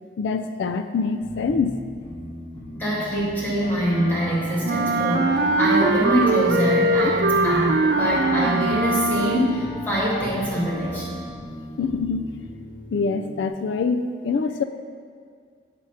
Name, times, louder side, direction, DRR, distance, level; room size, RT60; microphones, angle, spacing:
voice 1, 0.2-1.8 11.8-12.4 12.9-14.6, left 4 dB, 90° left, 8 dB, 0.4 m, -25 dB
sound 1, 1.2-13.4, left 1 dB, 25° left, 1.7 m, -39 dB
voice 2, 2.7-11.2, equal, 10° left, -9 dB, 2.4 m, -24 dB
Wind instrument woodwind instrument, 3.6-11.7, left 1 dB, 45° left, 1.6 m, -37 dB
Wind instrument woodwind instrument 2, 4.6-9.7, right 2 dB, 65° right, 0.5 m, -21 dB
9.0 x 4.9 x 5.6 m, 2.1 s
head